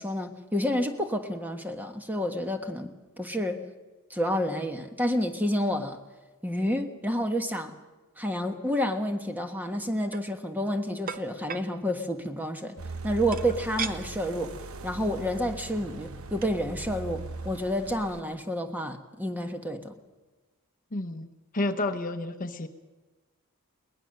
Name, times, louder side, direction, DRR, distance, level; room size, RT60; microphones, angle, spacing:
voice 1, 0.0-2.9 3.2-3.6 4.1-6.0 6.4-7.7 8.2-12.8 13.0-14.5 14.8-19.9, equal, 10° right, 6 dB, 1.3 m, -29 dB
sound 1, 9.9-10.3 11.1-11.7 13.3-14.0 14.5-14.6 14.9-15.2 16.1-16.2 16.4-16.6, right 6 dB, 40° right, 0.9 m, -36 dB
sound 2, 12.8-18.2, right 3 dB, 75° right, 1.1 m, -40 dB
voice 2, 20.9-21.3 21.5-22.7, left 2 dB, 40° left, 9 dB, 1.0 m, -30 dB
22.0 x 19.0 x 6.6 m, 1.2 s
head